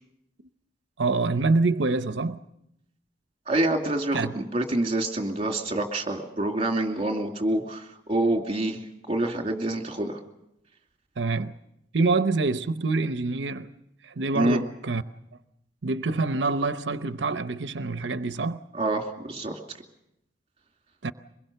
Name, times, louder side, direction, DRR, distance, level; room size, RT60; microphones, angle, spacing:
voice 1, 1.0-2.4 4.1-4.3 11.2-11.5 11.9-13.7 14.0-15.0 15.8-18.6 21.0-21.1, right 3 dB, 85° right, 0.8 m, -26 dB
voice 2, 3.5-10.2 14.3-14.6 18.7-19.5, right 1 dB, 35° right, 2.6 m, -27 dB
24.0 x 21.5 x 6.7 m
head